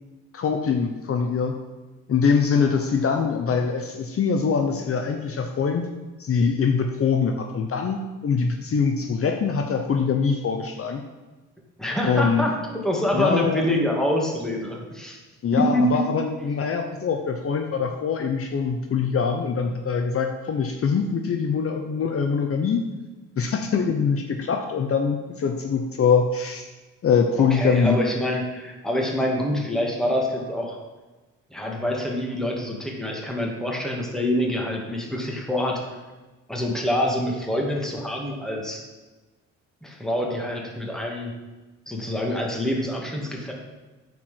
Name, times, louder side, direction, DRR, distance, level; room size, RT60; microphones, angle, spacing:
voice 1, 0.3-1.5 2.1-5.9 6.2-11.0 12.0-12.4 13.1-13.6 15.4-22.8 23.4-26.7 27.0-28.0, left 5 dB, 50° left, 4 dB, 0.9 m, -23 dB
voice 2, 11.8-15.2 15.5-16.0 27.4-30.8 31.5-35.8 36.5-38.8 39.8-41.3 41.9-43.5, left 1 dB, ahead, -1 dB, 2.3 m, -26 dB
9.2 x 4.7 x 7.6 m, 1.2 s
cardioid pair, 90°, 30 cm